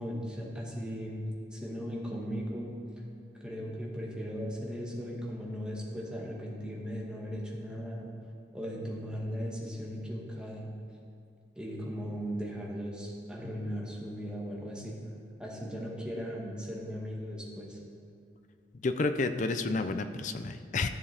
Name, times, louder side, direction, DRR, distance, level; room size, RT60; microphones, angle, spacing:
voice 1, 0.0-2.7 3.4-8.1 8.5-10.7 11.6-15.0 15.4-17.8, equal, 5° right, -3 dB, 1.4 m, -37 dB
voice 2, 18.8-20.9, left 3 dB, 45° left, 9 dB, 0.4 m, -30 dB
13.5 x 7.2 x 3.4 m, 2.3 s
head